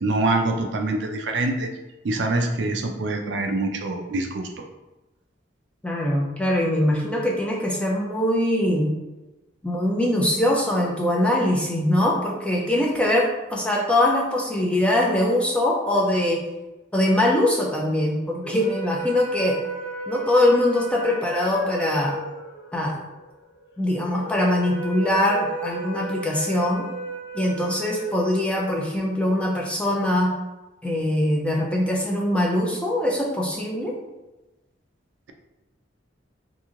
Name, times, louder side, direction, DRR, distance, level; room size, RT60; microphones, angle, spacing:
voice 1, 0.0-1.7 2.0-4.5, right 2 dB, 65° right, 4 dB, 0.4 m, -25 dB
voice 2, 5.8-8.9 9.6-16.4 16.9-19.6 20.1-22.2 22.7-23.0 23.8-26.9 27.3-30.3 30.8-33.9, left 1 dB, 5° left, -2 dB, 0.5 m, -22 dB
sound 1, 18.4-28.8, right 2 dB, 60° left, 0.7 m, -34 dB
3.0 x 2.6 x 3.6 m, 1.0 s
head